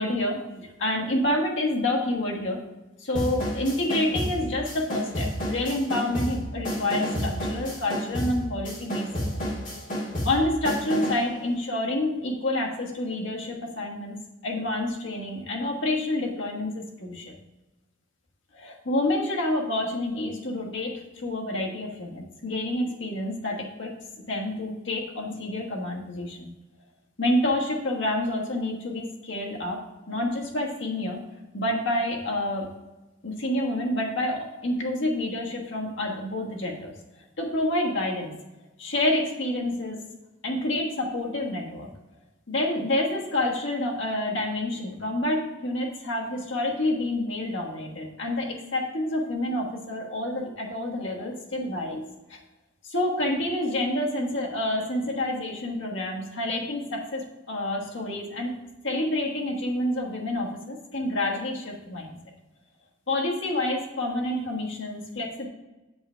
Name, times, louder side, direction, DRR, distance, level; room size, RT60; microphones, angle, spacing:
voice 1, 0.0-2.6 3.0-9.4 10.2-17.3 18.5-23.9 24.3-26.5 27.2-31.2 31.5-32.7 33.2-36.9 37.4-38.3 38.8-40.1 40.4-41.9 42.5-52.0 52.3-52.4 52.8-58.5 58.8-62.1 63.1-65.5, left 1 dB, 75° left, -1 dB, 1.4 m, -28 dB
sound 1, 3.1-11.3, equal, 40° left, 2.0 m, -31 dB
7.7 x 3.4 x 5.6 m, 1.1 s
head